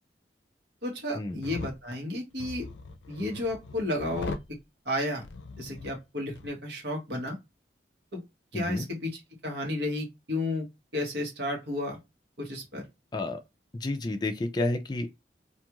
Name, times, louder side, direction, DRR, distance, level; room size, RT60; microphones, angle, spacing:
voice 1, 0.8-2.7 3.1-4.3 4.8-5.2 5.6-7.4 8.1-8.2 8.5-10.7 10.9-12.0 12.4-12.8, left 1 dB, 70° right, 1.2 m, -32 dB
sound 1, 1.3-1.8 2.4-4.5 5.2-6.0 6.3-6.5, left 3 dB, 90° left, 0.5 m, -40 dB
voice 2, 8.5-8.9 13.1-13.4 13.7-15.1, left 2 dB, 25° left, 0.3 m, -30 dB
2.5 x 2.4 x 2.9 m
head